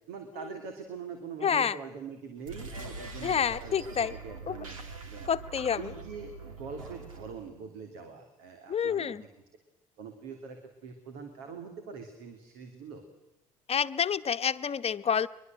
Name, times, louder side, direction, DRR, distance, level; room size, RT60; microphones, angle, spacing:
voice 1, 0.1-4.8 5.0-5.3 5.8-9.1 10.0-13.0, right 5 dB, 70° right, 6 dB, 3.0 m, -43 dB
voice 2, 1.4-1.8 3.2-4.1 4.5-4.6 5.3-5.9 8.7-9.2 13.7-15.3, left 7 dB, 35° left, 11 dB, 1.1 m, -28 dB
sound 1, 2.4-7.4, right 3 dB, 85° right, 2.8 m, -43 dB
23.0 x 22.5 x 7.8 m, 0.94 s
hypercardioid pair, 55°, 17 cm